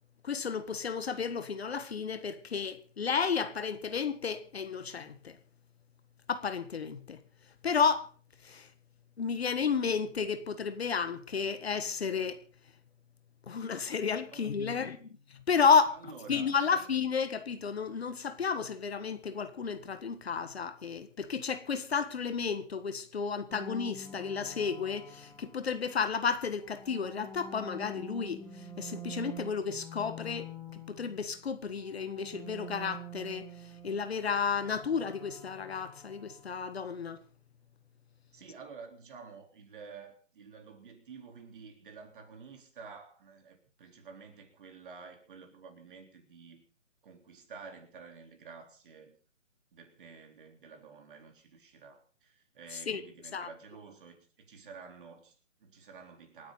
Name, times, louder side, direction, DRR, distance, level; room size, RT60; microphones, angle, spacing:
voice 1, 0.2-5.4 6.3-7.2 7.6-8.1 8.4-8.7 9.2-12.4 13.5-15.1 15.5-16.0 16.3-33.5 33.8-37.2 52.9-53.0 53.3-53.5, left 6 dB, 55° left, 1.6 m, -32 dB
voice 2, 14.3-15.2 15.9-16.8 38.3-46.6 47.0-49.2 49.7-56.5, right 5 dB, 40° right, 3.9 m, -50 dB
sound 1, 23.5-25.9 26.5-31.4 31.7-36.6, equal, ahead, 0.8 m, -47 dB
28.0 x 9.4 x 4.0 m
figure-of-eight pair, 155°, 38 cm